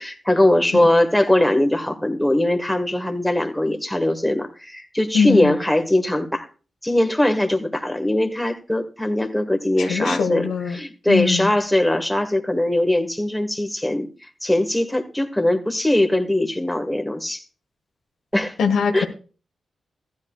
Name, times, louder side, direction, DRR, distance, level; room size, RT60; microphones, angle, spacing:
voice 1, 0.0-6.5 6.8-10.4 10.7-14.1 14.4-17.4 18.3-18.5 18.9-19.1, left 1 dB, 5° left, 1.6 m, -21 dB
voice 2, 5.1-5.6 9.8-10.8 11.1-11.5 18.6-19.1, left 6 dB, 85° left, 1.4 m, -21 dB
14.5 x 11.0 x 2.4 m
cardioid pair, 55°, 0 cm